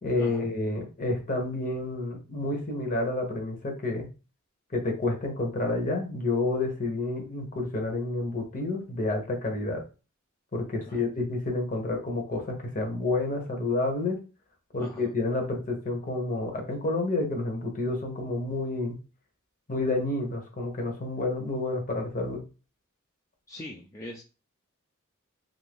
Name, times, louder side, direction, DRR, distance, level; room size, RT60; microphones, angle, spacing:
voice 1, 0.0-4.1 4.7-9.8 10.5-14.2 14.7-19.0 19.7-22.4, left 2 dB, 40° left, 3 dB, 0.8 m, -29 dB
voice 2, 14.8-15.1 23.5-24.2, left 1 dB, 15° left, -1 dB, 0.3 m, -41 dB
2.6 x 2.5 x 3.3 m, 0.33 s
head